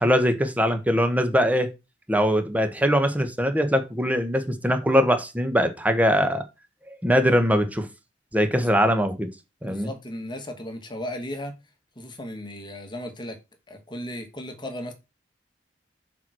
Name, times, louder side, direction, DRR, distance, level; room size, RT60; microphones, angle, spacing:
voice 1, 0.0-1.7 2.1-6.4 7.0-7.9 8.3-9.3 9.6-9.9, equal, 10° right, 1.2 m, -22 dB
voice 2, 9.6-11.5 12.0-13.4 13.7-14.9, left 1 dB, 25° left, 1.5 m, -35 dB
7.1 x 4.6 x 6.2 m
head